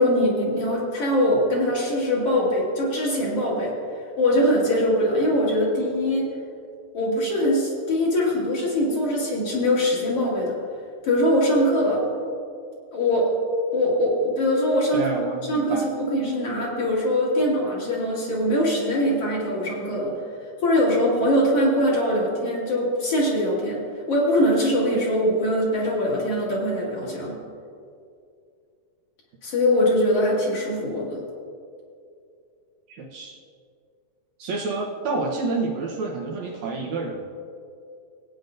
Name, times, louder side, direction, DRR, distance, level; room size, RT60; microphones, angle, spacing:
voice 1, 0.0-3.7 4.2-6.3 6.9-10.6 11.0-12.0 12.9-13.3 13.7-15.1 15.5-20.1 20.6-23.8 24.1-27.4 29.4-31.2, left 1 dB, 50° left, -5 dB, 3.0 m, -22 dB
voice 2, 14.9-15.9 32.9-33.4 34.4-37.2, right 3 dB, 65° right, -3 dB, 2.2 m, -29 dB
18.5 x 9.3 x 2.6 m, 2.4 s
omnidirectional pair, 3.7 m